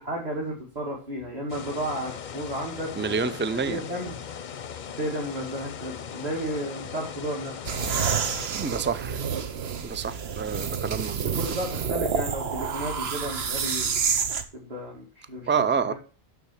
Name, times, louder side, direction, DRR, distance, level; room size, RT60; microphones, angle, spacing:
voice 1, 0.0-4.2 5.0-7.5 11.4-14.0 14.5-15.6 15.9-16.0, right 1 dB, 40° right, 2.2 m, -33 dB
sound 1, 1.5-8.5, left 7 dB, 55° left, 0.7 m, -39 dB
voice 2, 3.0-3.8 8.5-9.2 9.8-11.4 15.5-15.9, right 6 dB, 20° right, 0.4 m, -28 dB
sound 2, 7.6-14.4, right 6 dB, 90° right, 1.1 m, -28 dB
7.0 x 6.4 x 7.3 m
omnidirectional pair, 1.0 m